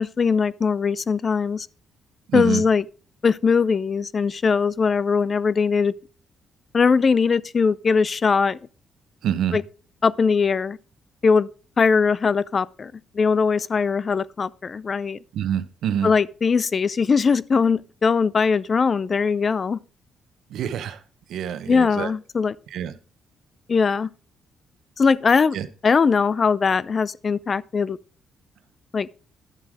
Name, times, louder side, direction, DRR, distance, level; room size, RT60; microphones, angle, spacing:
voice 1, 0.0-1.7 2.3-2.8 3.2-5.9 6.7-8.6 9.5-9.6 10.0-10.8 11.2-11.5 11.8-15.2 16.0-19.8 21.7-22.5 23.7-24.1 25.0-25.6 25.8-28.0 28.9-29.1, left 5 dB, 40° left, 0.4 m, -20 dB
voice 2, 2.3-2.6 9.2-9.6 15.3-16.1 20.5-21.0 21.3-22.1 22.7-23.0 25.5-25.7, right 9 dB, 75° right, 0.9 m, -26 dB
11.0 x 7.5 x 4.7 m
cardioid pair, 90°, 0 cm